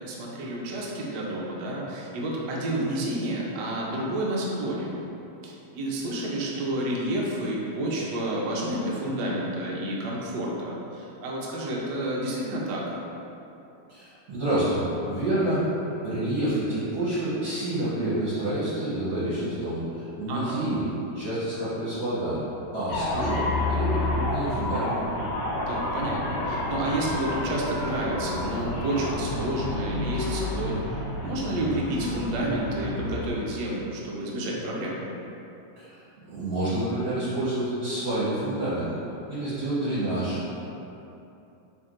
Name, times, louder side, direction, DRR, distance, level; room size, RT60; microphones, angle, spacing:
voice 1, 0.0-4.9 5.4-12.8 20.3-20.6 25.7-35.0, right 1 dB, 70° right, -3 dB, 1.2 m, -30 dB
voice 2, 13.9-15.6 16.0-20.8 21.1-22.4 22.7-24.9 35.8-38.9 39.3-40.6, right 1 dB, 55° right, -11 dB, 1.4 m, -28 dB
sound 1, 22.9-33.3, left 2 dB, 75° left, 1.4 m, -30 dB
4.4 x 3.3 x 2.5 m, 2.9 s
omnidirectional pair, 2.1 m